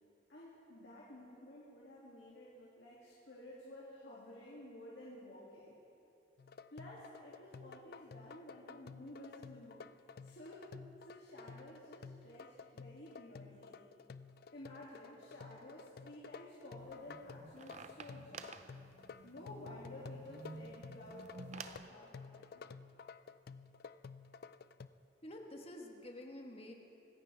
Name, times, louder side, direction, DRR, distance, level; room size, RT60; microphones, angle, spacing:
voice 1, 0.3-5.8 6.7-9.9 10.2-10.7 11.0-13.8 14.5-18.5 19.2-22.6, left 1 dB, 75° left, -7 dB, 2.7 m, -53 dB
sound 1, 6.4-24.9, left 5 dB, 60° left, 0.4 m, -53 dB
sound 2, 16.8-21.9, right 4 dB, 40° right, 0.6 m, -52 dB
voice 2, 25.2-26.7, left 1 dB, 35° left, 2 dB, 1.5 m, -49 dB
25.0 x 14.5 x 3.5 m, 2.8 s
head